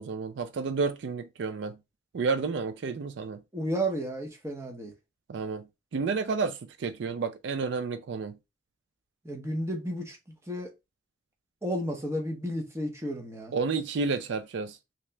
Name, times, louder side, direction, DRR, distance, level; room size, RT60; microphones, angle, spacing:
voice 1, 0.0-1.8 2.1-3.4 5.3-5.6 5.9-8.4 13.5-14.8, right 4 dB, 65° right, 0.4 m, -30 dB
voice 2, 3.5-4.9 9.2-10.2 10.5-10.7 11.6-13.5, equal, 15° right, 0.7 m, -32 dB
3.1 x 2.9 x 3.2 m
head